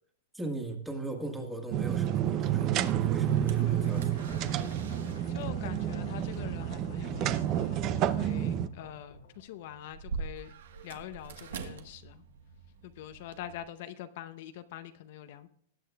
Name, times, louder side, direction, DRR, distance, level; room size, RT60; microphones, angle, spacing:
voice 1, 0.3-4.3, right 2 dB, 5° right, 3 dB, 1.6 m, -39 dB
sound 1, 1.7-9.7, left 2 dB, 90° left, 1.8 m, -48 dB
sound 2, 1.7-8.7, right 11 dB, 30° right, 0.5 m, -29 dB
sound 3, 2.5-13.6, right 5 dB, 80° right, 1.3 m, -46 dB
voice 2, 5.3-10.5 10.8-12.2 12.8-15.5, left 11 dB, 55° left, 10 dB, 0.7 m, -44 dB
19.5 x 8.4 x 2.3 m, 0.64 s
supercardioid pair, 155°, 0 cm